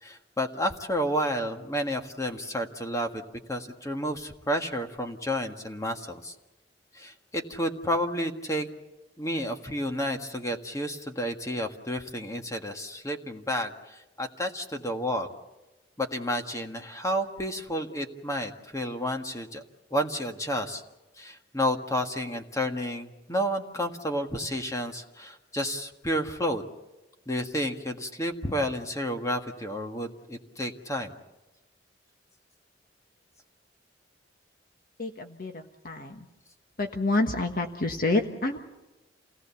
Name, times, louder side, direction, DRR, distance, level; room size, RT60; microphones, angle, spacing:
voice 1, 0.0-3.2 3.5-6.3 6.9-8.7 9.2-15.3 16.0-19.6 19.9-20.8 21.2-26.6 27.3-31.2, equal, 20° left, 4 dB, 1.7 m, -31 dB
voice 2, 35.0-36.3 36.8-38.6, left 2 dB, 50° left, 5 dB, 1.4 m, -28 dB
28.5 x 18.0 x 7.1 m, 1.1 s
head